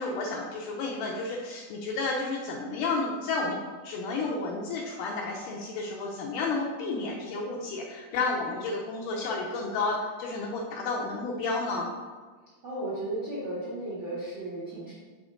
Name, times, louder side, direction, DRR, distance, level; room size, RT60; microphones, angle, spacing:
voice 1, 0.0-3.6 3.8-11.9, left 3 dB, 75° left, -1 dB, 2.0 m, -31 dB
voice 2, 12.6-14.9, right 1 dB, 50° right, -9 dB, 1.3 m, -34 dB
6.2 x 3.6 x 4.9 m, 1.4 s
omnidirectional pair, 4.1 m